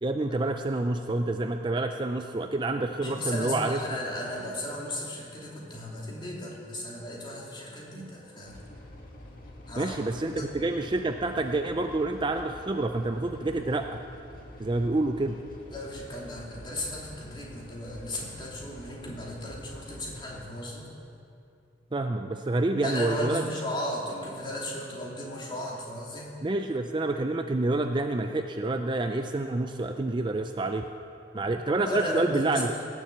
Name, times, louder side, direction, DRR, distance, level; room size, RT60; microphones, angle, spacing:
voice 1, 0.0-3.8 9.8-14.0 14.6-15.4 21.9-23.4 26.4-30.9 31.3-32.7, right 2 dB, 25° right, 6 dB, 0.4 m, -28 dB
voice 2, 3.0-8.6 9.7-10.5 15.7-20.9 22.8-26.3 31.9-32.6, left 1 dB, 25° left, -4 dB, 2.9 m, -36 dB
sound 1, 8.4-20.4, left 1 dB, 45° left, 1.9 m, -47 dB
18.0 x 7.3 x 8.0 m, 2.6 s
head